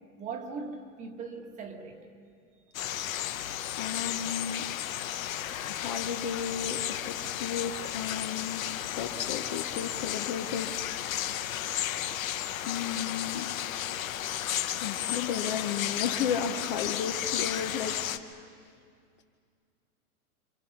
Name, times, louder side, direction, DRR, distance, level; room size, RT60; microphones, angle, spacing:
voice 1, 0.0-2.1, right 4 dB, 15° right, 4 dB, 1.3 m, -40 dB
sound 1, 2.7-18.2, left 11 dB, 65° left, 1.2 m, -33 dB
voice 2, 3.8-4.7 5.7-8.7 9.0-10.9 12.7-13.5 14.8-18.4, left 7 dB, 30° left, 5 dB, 0.8 m, -34 dB
27.5 x 25.0 x 5.8 m, 2.3 s
supercardioid pair, 160°, 43 cm